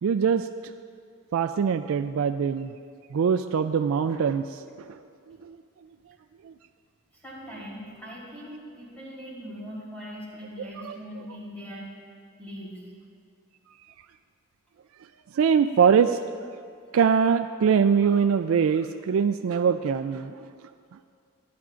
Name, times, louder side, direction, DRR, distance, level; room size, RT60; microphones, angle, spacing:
voice 1, 0.0-0.5 1.3-2.7 3.1-5.0 5.3-5.6 6.4-6.5 10.8-11.0 15.3-16.2 16.9-20.5 20.9-21.0, right 6 dB, 75° right, 9 dB, 0.3 m, -23 dB
voice 2, 7.1-11.9 12.4-12.8, equal, 10° left, -7 dB, 3.7 m, -40 dB
24.5 x 10.5 x 2.5 m, 2.2 s
head